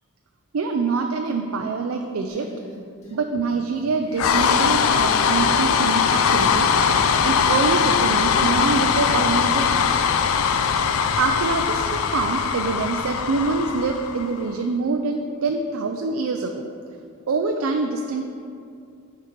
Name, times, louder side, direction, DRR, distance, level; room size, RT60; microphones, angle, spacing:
voice 1, 0.5-2.5 3.1-6.7 7.2-9.8 11.2-16.6 17.3-18.3, right 4 dB, 75° right, 4 dB, 0.4 m, -25 dB
sound 1, 2.3-3.2 3.5-3.9 4.3-5.2 6.2-7.1 7.4-9.1, left 1 dB, 35° left, 1.9 m, -41 dB
sound 2, 4.2-14.4, left 6 dB, 75° left, 0.4 m, -21 dB
9.3 x 4.8 x 4.6 m, 2.4 s
head